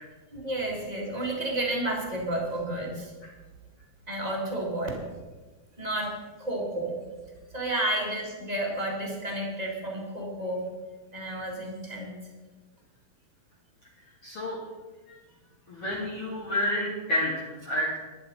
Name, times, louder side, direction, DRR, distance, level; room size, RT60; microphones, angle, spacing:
voice 1, 0.3-3.1 4.1-5.0 5.8-6.1 6.4-6.9 7.5-10.6 11.1-12.1, right 1 dB, 15° right, -2 dB, 1.6 m, -31 dB
voice 2, 14.2-14.6 15.7-18.0, left 1 dB, 45° left, -5 dB, 2.5 m, -29 dB
11.5 x 11.0 x 5.5 m, 1.3 s
omnidirectional pair, 4.4 m